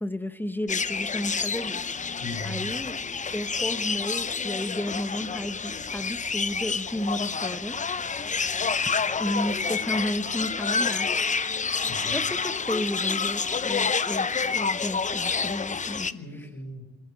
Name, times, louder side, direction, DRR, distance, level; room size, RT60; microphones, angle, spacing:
voice 1, 0.0-1.8 2.4-3.0 3.3-8.4 9.2-11.1 12.1-16.1, left 1 dB, 5° left, 11 dB, 1.2 m, -33 dB
sound 1, 0.7-16.1, left 5 dB, 25° left, 0.7 m, -28 dB
voice 2, 2.2-2.7 11.9-12.2 16.0-17.0, left 2 dB, 60° left, 4 dB, 5.7 m, -38 dB
21.5 x 15.5 x 9.1 m, 1.1 s
cardioid pair, 90°, 30 cm